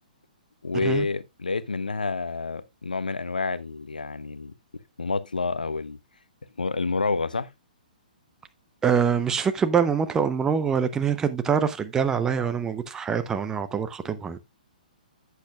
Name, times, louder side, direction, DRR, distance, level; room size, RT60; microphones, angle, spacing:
voice 1, 0.6-4.5 5.0-6.0 6.6-7.5, left 3 dB, 75° left, 0.7 m, -28 dB
voice 2, 8.8-14.4, right 7 dB, 10° right, 0.7 m, -24 dB
11.5 x 8.2 x 2.3 m
figure-of-eight pair, 120°, 5 cm